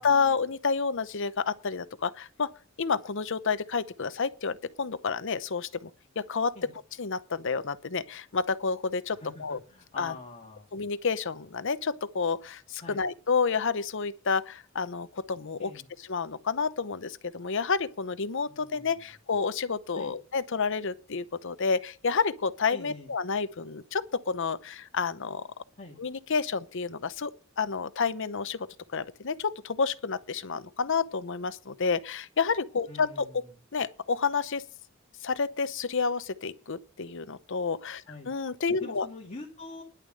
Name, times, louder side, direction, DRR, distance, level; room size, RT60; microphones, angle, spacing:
voice 1, 0.0-2.5 2.8-5.9 6.2-6.5 7.0-9.6 10.0-10.1 10.7-15.7 16.0-25.4 26.0-28.7 28.9-33.4 33.7-34.6 35.2-39.1, left 5 dB, 65° left, 0.8 m, -30 dB
voice 2, 9.1-10.7 12.8-13.0 15.6-15.8 18.5-18.9 19.9-20.1 22.7-23.1 25.7-26.0 32.9-33.3 38.1-38.3 38.8-39.8, left 2 dB, 35° left, 2.4 m, -45 dB
11.0 x 6.8 x 7.6 m
head